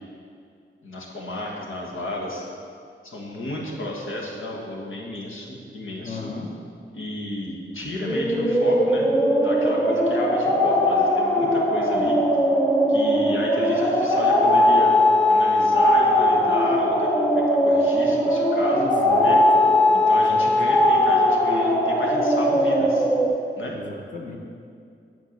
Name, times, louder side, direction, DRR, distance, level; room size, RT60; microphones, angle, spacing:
voice 1, 0.8-2.4 3.0-6.3 6.9-12.2 12.9-14.9 15.3-18.9 19.2-19.4 19.9-23.1 23.6-23.8, left 1 dB, 85° left, -2 dB, 1.5 m, -32 dB
voice 2, 6.0-6.6 18.7-19.7 20.1-20.5 23.6-24.4, left 3 dB, 40° left, 0 dB, 1.4 m, -34 dB
sound 1, 8.0-23.3, left 1 dB, 10° left, 1.1 m, -19 dB
8.5 x 4.7 x 6.6 m, 2.3 s
cardioid pair, 60°, 20 cm